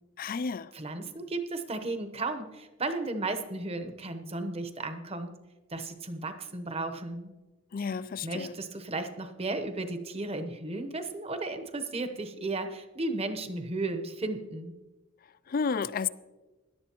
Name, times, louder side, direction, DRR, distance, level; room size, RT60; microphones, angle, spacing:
voice 1, 0.2-0.7 7.7-8.5 15.5-16.1, left 5 dB, 45° left, 0.4 m, -31 dB
voice 2, 0.7-5.4 5.7-7.3 8.2-14.8, right 2 dB, 30° right, 0.9 m, -34 dB
17.0 x 11.0 x 3.0 m
head